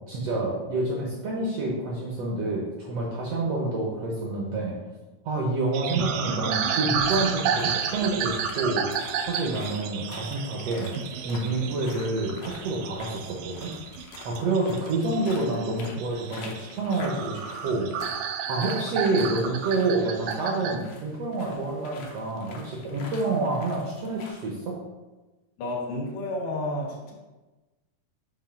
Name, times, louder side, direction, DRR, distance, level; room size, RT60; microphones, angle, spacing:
voice 1, 0.1-4.8 5.2-8.9 9.2-10.9 11.2-13.7 14.2-17.9 18.5-24.8, right 2 dB, 70° right, -2 dB, 1.5 m, -28 dB
sound 1, 5.7-20.8, right 7 dB, 85° right, 1.6 m, -31 dB
sound 2, 6.6-24.5, left 4 dB, 70° left, 2.2 m, -47 dB
voice 2, 25.6-27.1, left 1 dB, 90° left, -3 dB, 3.1 m, -31 dB
7.3 x 2.7 x 5.8 m, 1.2 s
omnidirectional pair, 3.8 m